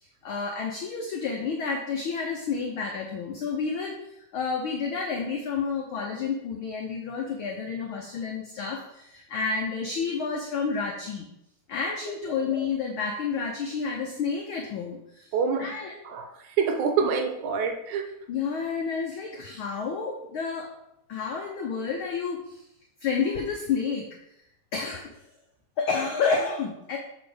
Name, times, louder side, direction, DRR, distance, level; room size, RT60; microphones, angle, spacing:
voice 1, 0.0-11.3 11.7-15.3 15.6-16.3 17.0-17.1 18.3-20.7 21.1-22.6 23.0-24.1 24.7-25.1 25.8-27.0, left 5 dB, 90° left, 1 dB, 1.1 m, -30 dB
voice 2, 15.3-15.7 16.1-18.1, right 6 dB, 85° right, 5 dB, 2.3 m, -26 dB
6.8 x 4.1 x 5.0 m, 0.80 s
omnidirectional pair, 3.3 m